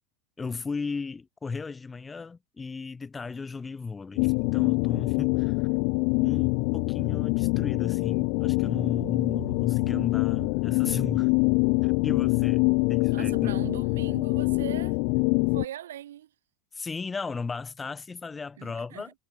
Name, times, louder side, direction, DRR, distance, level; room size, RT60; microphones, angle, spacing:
voice 1, 0.4-5.6 6.2-11.3 11.8-12.6 12.9-13.5 16.7-19.1, left 4 dB, 15° left, 2.2 m, -35 dB
sound 1, 4.2-15.6, left 38 dB, 60° left, 0.4 m, -25 dB
voice 2, 13.1-15.0 15.5-16.3 18.6-19.1, right 12 dB, 90° right, 1.8 m, -39 dB
supercardioid pair, 115°, 0 cm